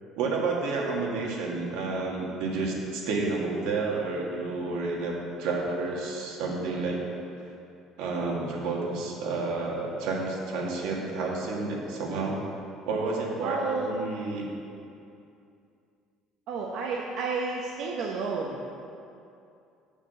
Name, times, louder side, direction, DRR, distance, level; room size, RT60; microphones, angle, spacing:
voice 1, 0.2-5.1 5.4-7.0 8.0-12.4 12.9-14.5, right 3 dB, 85° right, -2 dB, 1.9 m, -30 dB
voice 2, 13.4-13.9 16.5-18.7, right 4 dB, 60° right, -1 dB, 0.8 m, -31 dB
7.3 x 6.6 x 6.9 m, 2.6 s
cardioid pair, 165°, 0 cm